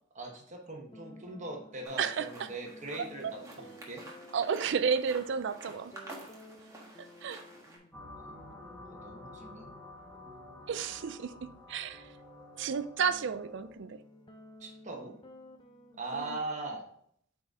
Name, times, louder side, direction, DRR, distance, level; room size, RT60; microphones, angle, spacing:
voice 1, 0.1-4.0 8.2-8.4 8.6-9.7 14.6-15.2 16.0-16.9, right 2 dB, 35° right, 1 dB, 1.1 m, -41 dB
sound 1, 0.9-16.0, left 1 dB, 25° left, 0.6 m, -55 dB
sound 2, 1.8-7.8, right 1 dB, 15° right, 1.4 m, -50 dB
voice 2, 4.3-6.1 7.0-7.4 10.7-11.3 11.7-12.1 12.6-14.0 16.1-16.4, right 6 dB, 60° right, 11 dB, 0.4 m, -32 dB
sound 3, 7.9-13.7, left 2 dB, 5° left, 1.2 m, -50 dB
8.5 x 4.1 x 3.6 m, 0.67 s
head